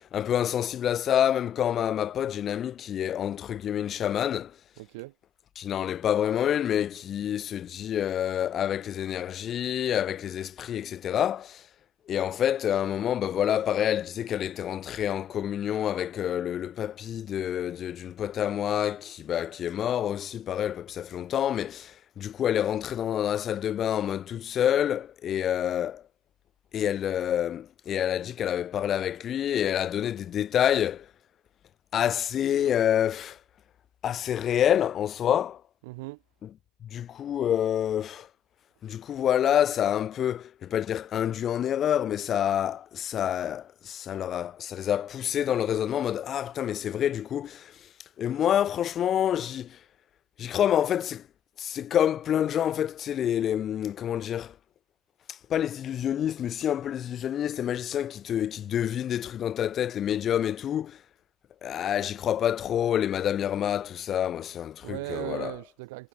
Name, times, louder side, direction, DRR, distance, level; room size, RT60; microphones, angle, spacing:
voice 1, 0.0-4.6 5.5-11.7 12.1-26.0 26.7-31.1 31.9-33.4 34.0-35.6 36.4-36.5 36.8-38.3 38.8-47.9 48.2-49.8 50.4-51.2 51.6-54.6 55.3-61.0 61.6-65.6, left 10 dB, 40° left, 3.0 m, -27 dB
voice 2, 4.8-5.1 35.9-36.2 64.8-66.1, right 23 dB, 65° right, 4.4 m, -37 dB
hypercardioid pair, 80°, 0 cm